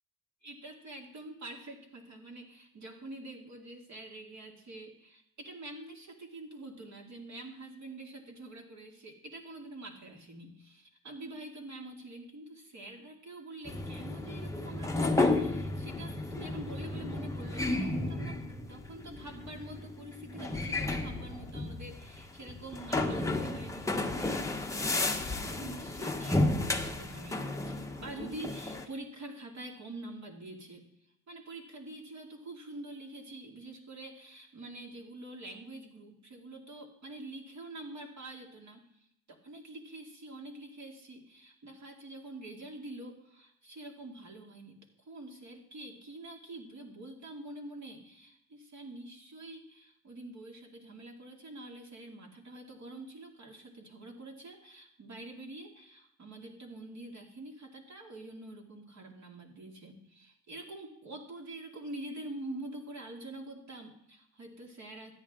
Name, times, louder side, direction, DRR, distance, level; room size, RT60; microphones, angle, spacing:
voice 1, 0.4-30.9 31.3-44.8 45.1-65.1, right 2 dB, 45° right, 1 dB, 2.5 m, -46 dB
sound 1, 13.6-28.8, left 2 dB, 10° left, 1.0 m, -33 dB
13.5 x 9.7 x 3.6 m, 0.75 s
cardioid pair, 100°, 39 cm